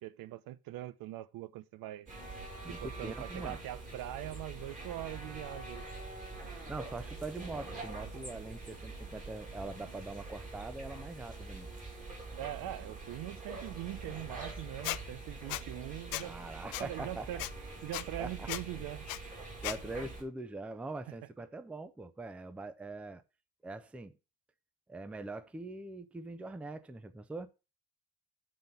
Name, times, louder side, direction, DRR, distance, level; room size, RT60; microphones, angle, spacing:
voice 1, 0.0-2.1 2.7-5.8 12.4-16.4 16.8-17.5 17.8-19.1, right 14 dB, 80° right, 0.7 m, -42 dB
sound 1, 2.1-20.2, right 3 dB, 20° right, 2.8 m, -45 dB
voice 2, 2.6-3.6 6.7-11.7 16.2-17.4 18.2-18.5 19.6-23.2 23.6-24.1 24.9-27.5, right 2 dB, 5° right, 0.4 m, -43 dB
Squeak, 14.8-15.0 15.5-15.6 16.1-16.3 16.7-16.8 17.4-17.5 17.9-18.0 18.5-18.6 19.1-19.2 19.6-19.8, left 16 dB, 80° left, 0.6 m, -36 dB
7.7 x 3.8 x 6.7 m
cardioid pair, 170°, 34 cm